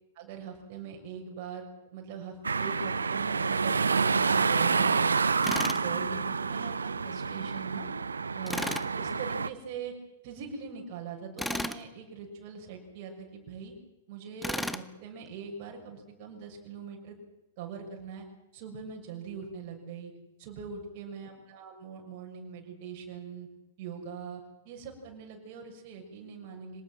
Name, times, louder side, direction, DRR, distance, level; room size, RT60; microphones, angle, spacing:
voice 1, 0.1-5.2 5.6-7.9 8.3-9.9 10.2-13.7 14.1-17.2 17.6-18.3 18.5-20.1 20.4-23.5 23.8-26.8, right 6 dB, 45° right, 1 dB, 6.7 m, -42 dB
sound 1, 2.4-9.5, right 5 dB, 80° right, 0.8 m, -28 dB
Tools, 5.4-5.8 8.5-8.9 11.4-11.8 14.4-14.9, left 1 dB, 5° left, 1.1 m, -33 dB
25.5 x 19.0 x 7.7 m, 0.99 s
figure-of-eight pair, 105°, 0 cm